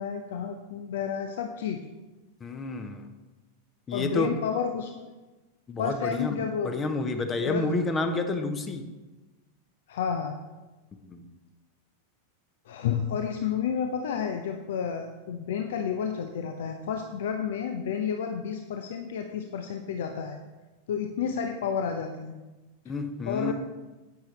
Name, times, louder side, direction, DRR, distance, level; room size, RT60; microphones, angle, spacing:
voice 1, 0.0-1.8 3.9-5.1 5.8-6.9 7.4-7.6 9.9-10.3 12.7-20.4 20.9-22.4 22.9-23.0 23.3-23.5, left 7 dB, 55° left, 5 dB, 0.6 m, -31 dB
voice 2, 2.4-3.0 3.9-4.3 5.7-6.4 6.6-8.8 11.1-11.3 22.9-23.5, left 2 dB, 20° left, 8 dB, 0.8 m, -29 dB
10.5 x 8.9 x 3.2 m, 1.1 s
figure-of-eight pair, 90°, 0 cm